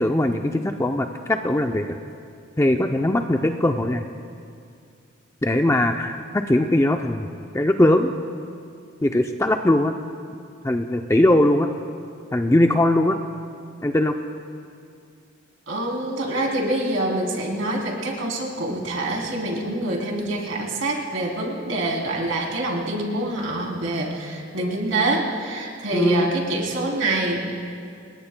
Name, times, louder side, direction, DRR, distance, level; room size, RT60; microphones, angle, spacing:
voice 1, 0.0-2.0 2.6-4.1 5.4-7.3 7.5-8.1 9.0-9.9 10.6-11.7 12.3-13.2 13.8-14.2 25.9-26.3, left 1 dB, 15° left, 5 dB, 0.4 m, -20 dB
voice 2, 15.7-27.6, right 1 dB, 75° right, -1 dB, 3.2 m, -26 dB
27.5 x 20.5 x 2.2 m, 2.3 s
head